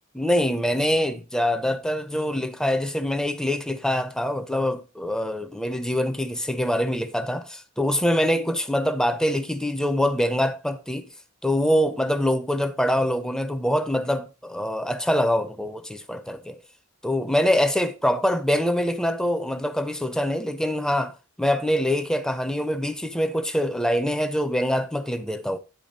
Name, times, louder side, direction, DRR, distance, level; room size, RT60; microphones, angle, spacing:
voice 1, 0.1-11.1 11.4-16.6 17.0-25.6, equal, 5° left, 0.6 m, -24 dB
10.0 x 3.6 x 5.2 m
head